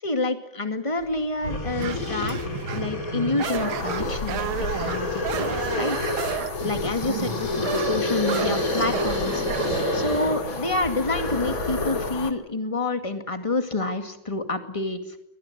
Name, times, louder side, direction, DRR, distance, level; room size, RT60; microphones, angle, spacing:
voice 1, 0.0-2.4 2.7-15.2, left 2 dB, 15° left, 7 dB, 2.2 m, -28 dB
sound 1, 1.0-1.1 1.4-12.2, left 1 dB, 40° left, 4.5 m, -29 dB
sound 2, 1.8-3.0 3.4-9.9, right 9 dB, 90° right, 2.0 m, -32 dB
sound 3, 3.5-12.3, left 5 dB, 75° left, 2.4 m, -35 dB
24.0 x 19.5 x 9.0 m, 0.80 s
omnidirectional pair, 2.3 m